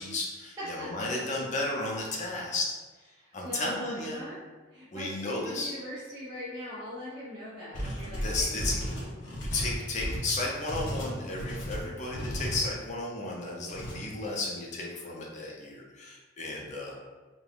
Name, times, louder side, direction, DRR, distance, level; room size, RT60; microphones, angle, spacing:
voice 1, 0.0-2.7 3.3-4.2 4.9-5.8 7.8-8.7 9.5-17.0, left 2 dB, 35° left, -2 dB, 0.5 m, -34 dB
voice 2, 0.6-1.1 3.1-4.4 4.7-8.9, equal, 20° right, -12 dB, 0.6 m, -41 dB
sound 1, 7.7-12.6 13.7-14.0, equal, 70° left, 0.7 m, -34 dB
3.2 x 2.2 x 2.4 m, 1.3 s
head